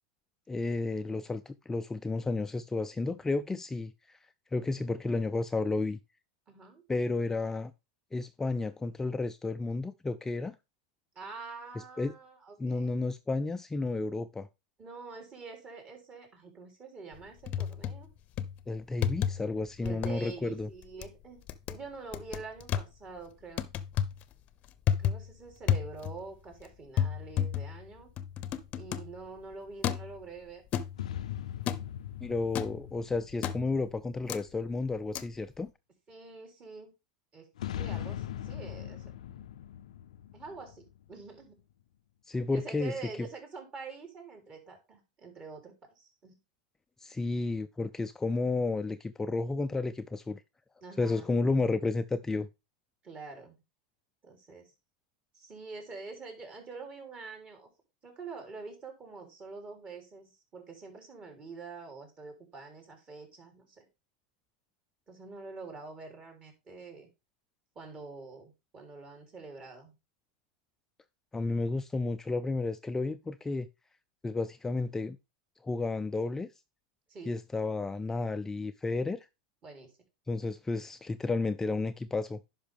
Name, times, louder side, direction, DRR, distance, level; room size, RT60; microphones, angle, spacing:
voice 1, 0.5-4.2 4.5-6.0 6.9-7.7 8.1-10.6 12.0-12.1 12.6-14.5 18.7-20.7 32.2-35.7 42.3-42.9 47.0-50.4 51.0-52.5 71.3-73.7 74.2-75.2 75.6-76.5 77.3-79.3 80.3-82.4, left 3 dB, 10° left, 0.4 m, -32 dB
voice 2, 6.5-6.8 11.1-12.9 14.8-18.1 19.8-21.4 21.7-23.7 25.0-28.1 28.7-30.6 36.1-36.9 37.3-39.4 40.3-40.8 41.1-41.6 42.5-46.4 50.8-51.4 53.0-53.6 54.2-54.7 55.3-57.7 58.0-63.8 65.1-67.1 67.7-69.9 77.1-77.3 79.6-79.9, right 4 dB, 30° right, 3.3 m, -46 dB
sound 1, 17.1-18.1 18.4-18.6 19.0-19.5 19.8-20.2 20.6-21.1 21.5-21.8 22.1-22.9 23.6-24.2 24.7-25.3 25.7-26.3 26.5-26.6 27.0-29.2 29.8-30.2 30.7-31.2 31.7-31.9 32.5-32.8 33.4-33.8 34.3-34.4 35.1-35.2, left 9 dB, 40° left, 0.7 m, -32 dB
sound 2, 31.0-34.6 37.6-41.4, left 11 dB, 85° left, 0.5 m, -40 dB
10.5 x 5.5 x 3.5 m
hypercardioid pair, 110°, 4 cm